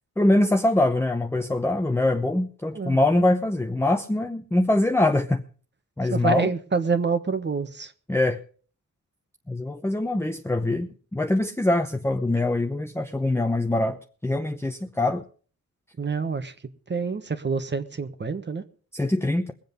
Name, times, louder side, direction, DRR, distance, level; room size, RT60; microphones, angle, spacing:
voice 1, 0.2-5.4 6.0-6.5 8.1-8.4 9.5-14.0 14.2-15.2 18.9-19.5, left 1 dB, 10° left, 5 dB, 0.8 m, -23 dB
voice 2, 6.1-7.9 16.0-16.5 16.9-18.6, right 5 dB, 35° right, 9 dB, 1.3 m, -27 dB
22.0 x 7.8 x 5.3 m, 0.42 s
wide cardioid pair, 110°, 30 cm